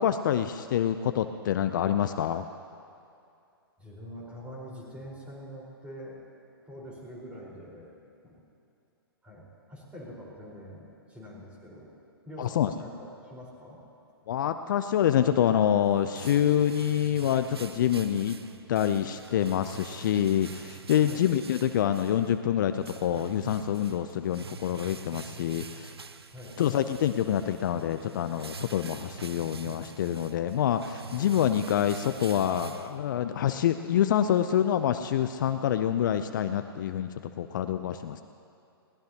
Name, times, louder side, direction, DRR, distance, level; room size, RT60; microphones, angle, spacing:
voice 1, 0.0-2.5 12.4-12.7 14.3-18.4 18.7-25.9 26.6-38.2, left 10 dB, 50° left, 9 dB, 0.6 m, -26 dB
voice 2, 3.8-6.2 6.6-7.9 8.2-8.4 9.2-11.9 12.2-13.8 21.0-21.2 26.3-26.5, equal, 10° right, -4 dB, 4.6 m, -45 dB
sound 1, 15.5-33.4, right 5 dB, 80° right, 0.7 m, -45 dB
21.5 x 18.0 x 2.9 m, 2.5 s
figure-of-eight pair, 120°, 13 cm